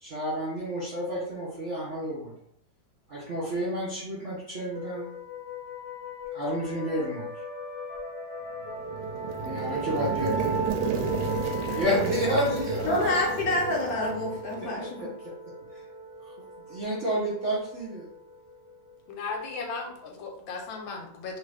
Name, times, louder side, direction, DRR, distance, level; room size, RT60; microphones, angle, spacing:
voice 1, 0.0-2.3 3.1-5.1 6.3-7.3 9.4-10.7 11.7-13.2 14.6-15.3 15.7-15.8 16.2-16.3 16.7-18.1, equal, 60° right, -7 dB, 0.7 m, -30 dB
sound 1, 4.7-20.1, equal, 15° right, 0.3 m, -38 dB
sound 2, 8.7-14.7, right 4 dB, 75° right, 1.2 m, -32 dB
voice 2, 12.9-15.1, left 1 dB, 60° left, -2 dB, 1.0 m, -27 dB
voice 3, 19.1-21.4, left 4 dB, 80° left, 2 dB, 1.4 m, -36 dB
3.0 x 2.4 x 3.3 m, 0.70 s
omnidirectional pair, 2.1 m